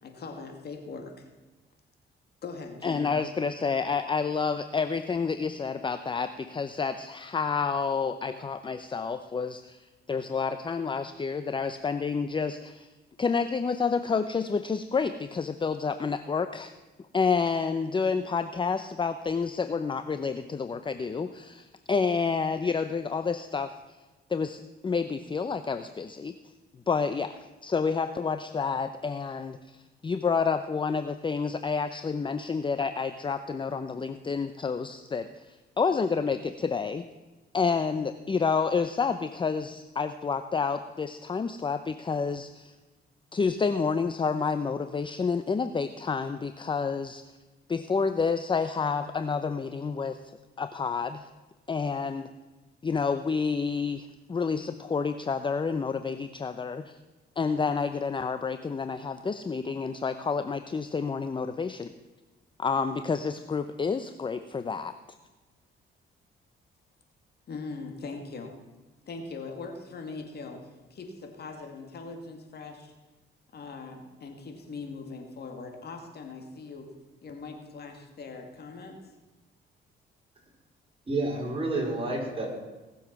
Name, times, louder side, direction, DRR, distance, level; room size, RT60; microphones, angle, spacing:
voice 1, 0.0-1.3 2.4-3.1 67.5-68.5 69.1-70.6 70.9-72.9 73.5-76.9 77.2-79.0, left 4 dB, 55° left, 4 dB, 2.4 m, -41 dB
voice 2, 2.8-12.9 13.2-16.7 17.1-24.0 24.3-26.3 26.9-37.0 37.5-42.8 43.3-47.2 47.7-50.3 50.6-51.3 51.7-52.3 52.8-57.0 57.4-61.9 62.6-64.9, left 5 dB, 25° left, 11 dB, 0.6 m, -29 dB
voice 3, 81.1-82.5, right 2 dB, 30° right, -1 dB, 4.7 m, -29 dB
18.5 x 7.2 x 6.0 m, 1.2 s
cardioid pair, 90°, 20 cm